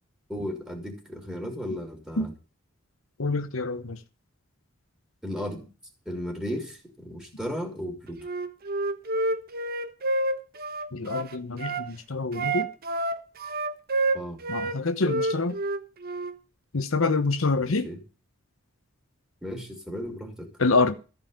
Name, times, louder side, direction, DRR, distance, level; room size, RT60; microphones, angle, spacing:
voice 1, 0.3-2.3 5.2-5.7 6.1-8.2 14.1-14.4 17.6-18.0 19.4-20.5, equal, 5° right, 3.5 m, -35 dB
voice 2, 3.2-4.0 10.9-12.7 14.5-15.6 16.7-17.9 20.6-20.9, left 3 dB, 80° left, 1.0 m, -26 dB
Wind instrument woodwind instrument, 8.2-11.9 12.3-14.8 15.0-16.4, right 2 dB, 50° right, 1.1 m, -28 dB
14.0 x 5.5 x 8.7 m
head